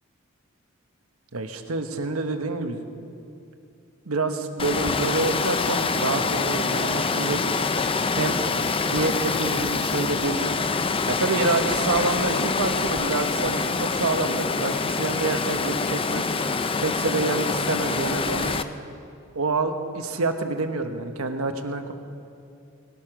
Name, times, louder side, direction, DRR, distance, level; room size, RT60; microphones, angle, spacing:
voice 1, 1.3-2.8 4.1-7.4 8.1-8.4 8.8-10.6 11.1-16.3 16.8-18.6 19.3-21.9, right 3 dB, 85° right, 7 dB, 1.2 m, -27 dB
Water, 4.6-18.6, left 4 dB, 25° left, 0.5 m, -25 dB
19.5 x 11.5 x 6.1 m, 2.5 s
head